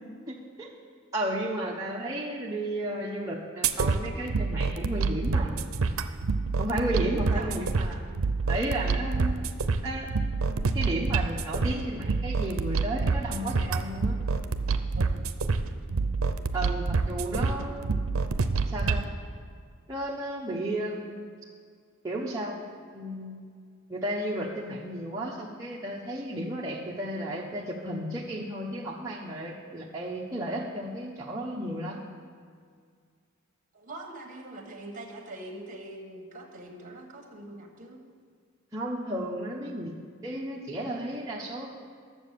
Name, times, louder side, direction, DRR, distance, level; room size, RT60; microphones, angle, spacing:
voice 1, 0.3-0.7 1.1-5.6 6.6-8.0 8.5-9.4 9.8-10.1 10.5-14.2 16.5-17.9 18.7-19.0 19.9-21.3 22.0-22.6 22.9-23.4 23.9-32.0 38.7-39.9 40.2-41.7, right 1 dB, 15° right, -5 dB, 0.8 m, -33 dB
sound 1, 3.6-19.0, right 4 dB, 75° right, 0.6 m, -28 dB
voice 2, 7.3-7.8 14.9-15.2 17.3-17.6 33.7-38.0, right 2 dB, 40° right, 3 dB, 1.5 m, -43 dB
10.0 x 7.4 x 6.8 m, 2.1 s
head